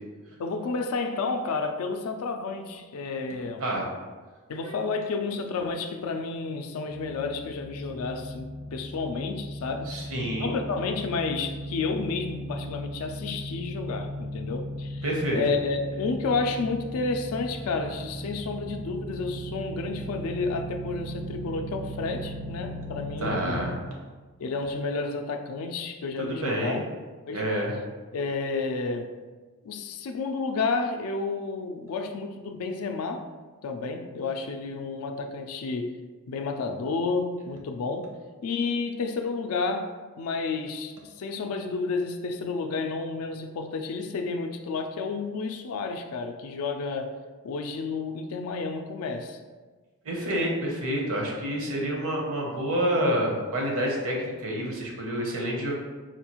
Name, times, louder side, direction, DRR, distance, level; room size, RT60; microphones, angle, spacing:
voice 1, 0.4-3.7 4.5-10.0 10.4-15.0 15.3-23.6 24.4-26.8 27.3-27.4 28.1-29.1 29.6-33.3 33.6-36.0 36.3-38.2 38.4-47.1 47.4-49.4, left 4 dB, 70° left, 0.3 m, -31 dB
sound 1, 6.9-23.6, equal, 15° right, 0.4 m, -37 dB
voice 2, 9.9-10.5 15.0-15.4 23.2-23.7 26.3-26.8 27.3-27.7 50.0-55.7, right 1 dB, 65° right, 0.8 m, -28 dB
4.2 x 2.3 x 2.9 m
head